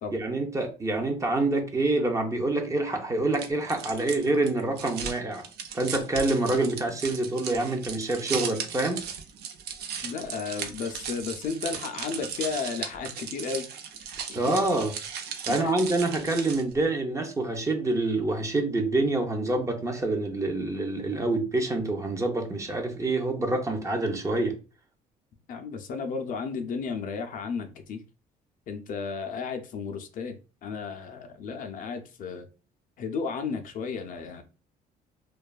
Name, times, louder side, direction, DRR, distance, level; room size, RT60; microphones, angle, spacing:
voice 1, 0.1-5.5 5.7-9.0 14.3-14.9 15.5-24.6, right 2 dB, 20° right, 0.5 m, -26 dB
sound 1, 3.3-16.8, right 7 dB, 70° right, 0.5 m, -37 dB
voice 2, 10.0-13.7 14.3-14.4 15.5-15.7 25.5-28.0 28.7-32.5 33.0-34.4, left 5 dB, 55° left, 0.4 m, -33 dB
2.6 x 2.3 x 2.3 m
cardioid pair, 110°, 17 cm